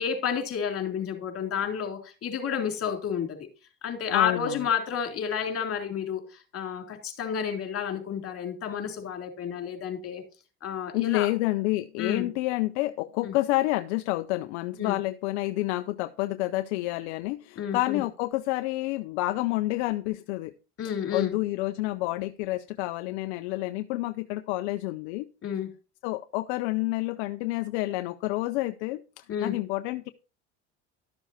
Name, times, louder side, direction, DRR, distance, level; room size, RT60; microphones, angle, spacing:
voice 1, 0.0-3.4 3.8-10.2 10.6-11.3 12.0-12.3 13.2-13.3 14.8-15.0 17.6-18.0 20.8-21.3 25.4-25.7 29.3-29.5, left 7 dB, 40° left, 4 dB, 3.5 m, -30 dB
voice 2, 4.1-4.7 10.9-20.5 21.1-25.3 26.0-30.1, left 18 dB, 75° left, 10 dB, 0.7 m, -29 dB
12.5 x 7.1 x 4.2 m, 0.34 s
hypercardioid pair, 85°, 34 cm